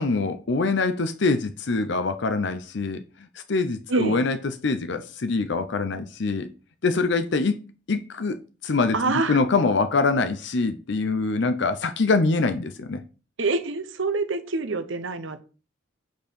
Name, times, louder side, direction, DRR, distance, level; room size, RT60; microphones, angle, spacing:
voice 1, 0.0-3.0 3.3-6.5 6.8-13.0, left 3 dB, 65° left, 0.6 m, -24 dB
voice 2, 3.9-4.2 8.9-9.4 13.4-15.4, right 3 dB, 75° right, 1.0 m, -26 dB
7.8 x 4.5 x 5.2 m
head